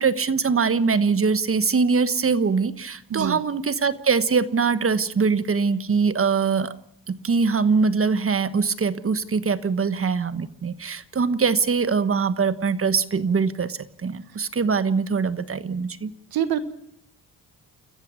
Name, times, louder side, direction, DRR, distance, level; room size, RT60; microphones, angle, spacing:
voice 1, 0.0-6.7 7.1-16.1, right 5 dB, 35° right, 13 dB, 1.3 m, -22 dB
voice 2, 3.1-3.4 16.3-16.6, right 10 dB, 80° right, 11 dB, 1.6 m, -24 dB
30.0 x 14.5 x 6.3 m, 0.72 s
cardioid pair, 75°, 36 cm